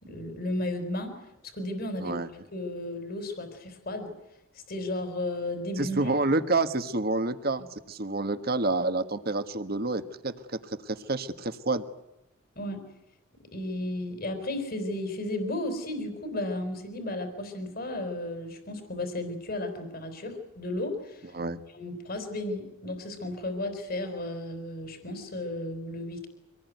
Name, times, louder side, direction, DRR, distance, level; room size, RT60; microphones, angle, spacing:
voice 1, 0.0-1.1 1.4-2.2 2.5-4.1 4.5-6.1 12.6-12.8 13.5-21.4 21.7-26.3, left 1 dB, 50° left, 7 dB, 4.3 m, -34 dB
voice 2, 5.8-10.6 10.9-11.8 21.3-21.6, right 2 dB, 50° right, 10 dB, 1.5 m, -28 dB
25.5 x 19.5 x 9.4 m, 0.87 s
head